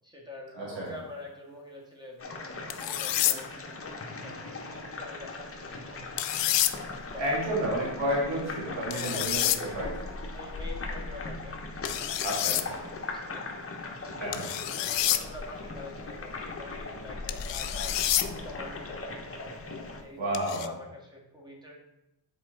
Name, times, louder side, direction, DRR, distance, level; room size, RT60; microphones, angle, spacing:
voice 1, 0.0-3.5 4.2-6.2 6.7-7.8 8.9-9.8 10.3-13.7 14.0-18.0 18.4-19.2 20.0-21.7, left 2 dB, 10° right, -2 dB, 1.9 m, -46 dB
voice 2, 0.5-0.9 7.1-9.9 12.2-12.7 14.2-14.5 20.2-20.7, equal, 85° right, -4 dB, 2.4 m, -31 dB
sound 1, 2.2-20.0, left 3 dB, 30° left, 1.0 m, -39 dB
sound 2, 2.7-3.4 6.2-6.7 8.9-9.6 11.8-12.6 14.3-15.2 17.3-18.3 20.3-20.7, left 13 dB, 80° left, 0.5 m, -28 dB
7.3 x 4.5 x 3.9 m, 0.94 s
cardioid pair, 80°, 44 cm